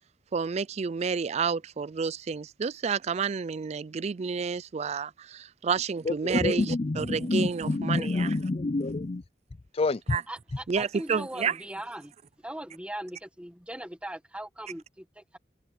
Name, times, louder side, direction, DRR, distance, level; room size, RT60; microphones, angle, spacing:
voice 1, 0.3-8.3 10.1-10.2 10.7-11.6, right 5 dB, 35° right, 0.4 m, -30 dB
voice 2, 6.4-9.2 9.7-10.2, left 2 dB, 30° left, 0.5 m, -27 dB
voice 3, 10.3-12.1 12.4-15.4, right 1 dB, 5° right, 1.8 m, -40 dB
head